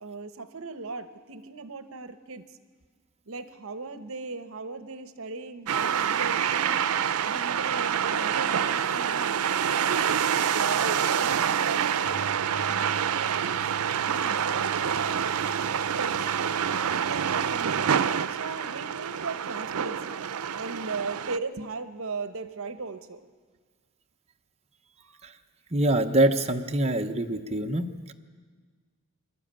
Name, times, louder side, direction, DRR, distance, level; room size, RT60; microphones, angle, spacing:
voice 1, 0.0-2.4 3.3-6.8 7.3-9.4 9.7-12.2 12.7-15.4 16.0-16.3 17.1-18.0 18.3-20.2 20.5-23.2, right 4 dB, 65° right, 10 dB, 0.9 m, -38 dB
sound 1, 5.7-21.4, right 8 dB, 90° right, 0.5 m, -27 dB
sound 2, 12.0-18.0, right 3 dB, 45° left, 4.7 m, -45 dB
voice 2, 25.7-28.1, right 1 dB, 30° right, 4 dB, 0.9 m, -25 dB
24.5 x 12.0 x 8.9 m, 1.5 s
head